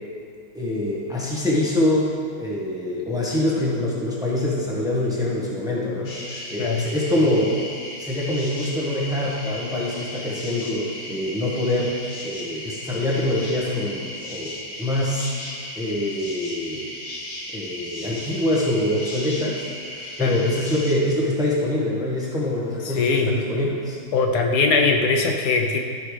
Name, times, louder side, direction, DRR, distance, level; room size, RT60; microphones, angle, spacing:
voice 1, 0.5-2.1 2.4-7.6 8.0-12.0 12.2-15.3 15.8-16.8 17.5-24.0, left 1 dB, 5° right, -5 dB, 1.1 m, -25 dB
sound 1, 6.0-20.9, left 1 dB, 90° left, 1.9 m, -36 dB
voice 2, 22.8-23.3 24.1-25.8, left 4 dB, 75° left, 3 dB, 1.2 m, -21 dB
13.0 x 5.5 x 3.3 m, 2.2 s
omnidirectional pair, 1.8 m